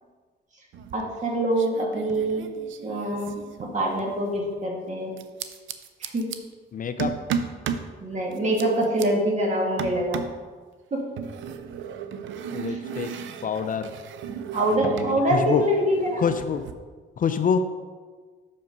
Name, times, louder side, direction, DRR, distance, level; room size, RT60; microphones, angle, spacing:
sound 1, 0.7-1.3 1.5-4.2 5.2-6.4 7.0-7.9 8.3-9.1 9.8-10.4 11.2-15.2 15.4-16.7, right 7 dB, 75° right, 0.6 m, -34 dB
voice 1, 0.9-2.5 2.8-5.1 6.0-6.3 8.0-10.2 10.9-11.0 12.7-12.8 14.5-16.2, right 1 dB, 35° right, -1 dB, 2.0 m, -25 dB
voice 2, 6.7-7.1 12.5-13.1 13.4-13.9 14.7-15.6 16.2-16.6 17.2-17.6, left 6 dB, 45° left, 8 dB, 0.5 m, -26 dB
6.7 x 5.3 x 5.3 m, 1.5 s
cardioid pair, 90°, 20 cm